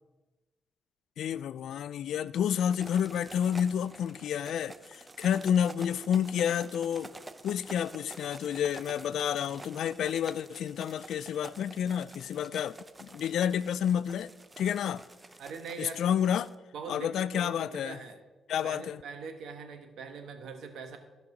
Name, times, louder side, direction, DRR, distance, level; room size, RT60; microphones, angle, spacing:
voice 1, 1.2-7.1 7.4-14.3 14.6-15.0 15.8-16.5 16.9-18.0 18.5-19.0, left 9 dB, 75° left, 0.3 m, -30 dB
sound 1, 2.7-16.5, right 2 dB, 15° right, 0.5 m, -49 dB
voice 2, 15.4-16.1 16.7-18.2 18.6-21.0, right 5 dB, 75° right, 1.2 m, -42 dB
14.5 x 5.3 x 4.9 m
cardioid pair, 120°, 0 cm